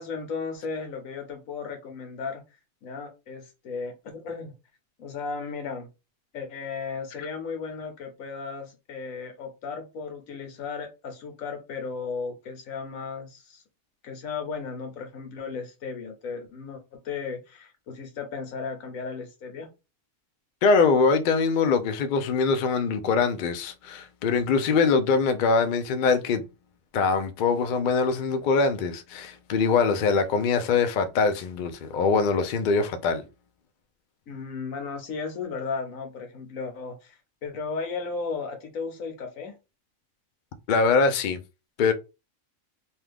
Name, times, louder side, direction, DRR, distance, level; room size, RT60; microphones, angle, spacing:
voice 1, 0.0-2.4 2.8-4.5 5.0-5.9 6.3-13.6 14.0-19.7 34.3-39.5, left 5 dB, 85° left, 1.3 m, -35 dB
voice 2, 20.6-26.4 26.9-33.3 40.7-41.4 41.8-41.9, left 4 dB, 70° left, 0.4 m, -23 dB
2.8 x 2.3 x 3.3 m
omnidirectional pair, 1.4 m